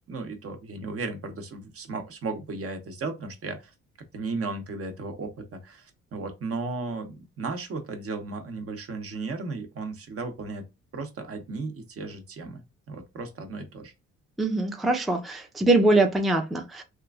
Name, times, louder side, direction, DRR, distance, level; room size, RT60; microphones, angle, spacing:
voice 1, 0.1-3.7 4.1-10.6 10.9-12.6 12.9-13.9, right 3 dB, 50° right, 0.8 m, -35 dB
voice 2, 14.4-16.8, right 2 dB, ahead, 0.5 m, -23 dB
3.0 x 2.4 x 2.3 m
cardioid pair, 90°, 30 cm